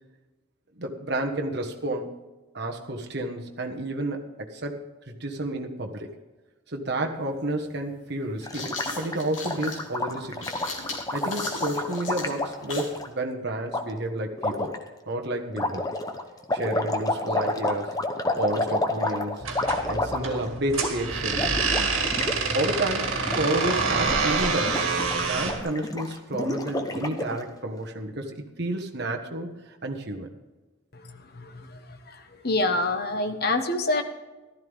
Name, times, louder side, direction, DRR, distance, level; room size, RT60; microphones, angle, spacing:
voice 1, 0.7-2.2 2.5-6.1 6.7-10.5 11.1-14.7 15.1-15.9 16.5-17.9 18.3-19.5 19.9-21.6 22.5-29.5 29.8-30.3, right 1 dB, 55° right, 2 dB, 1.4 m, -31 dB
sound 1, 7.1-7.2 8.2-13.0, left 3 dB, 65° left, 3.4 m, -38 dB
Gurgling, 8.4-13.1 13.7-13.8 14.4-14.8 15.5-20.5 20.7-20.9 21.2-22.4 22.6-22.8 23.2-23.7 24.0-27.4, left 2 dB, 20° left, 0.9 m, -30 dB
sound 2, 19.4-25.6, right 4 dB, 80° right, 2.0 m, -27 dB
voice 2, 32.4-34.0, left 2 dB, 50° left, 7 dB, 1.2 m, -25 dB
15.0 x 13.0 x 3.6 m, 1.2 s
head